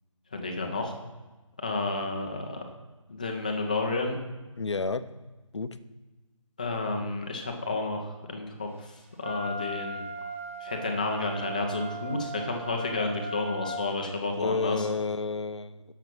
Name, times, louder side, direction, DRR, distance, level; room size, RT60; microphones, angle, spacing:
voice 1, 0.3-0.9 1.6-2.6 3.1-4.2 6.6-8.9 9.2-10.0 10.6-14.9, left 3 dB, 15° left, 3 dB, 0.7 m, -31 dB
voice 2, 4.6-5.0 5.5-5.8 14.4-15.9, left 4 dB, 55° left, 12 dB, 0.7 m, -30 dB
Wind instrument woodwind instrument, 9.2-13.8, right 1 dB, 25° right, 0.8 m, -38 dB
11.0 x 6.9 x 6.0 m, 1.2 s
figure-of-eight pair, 175°, 17 cm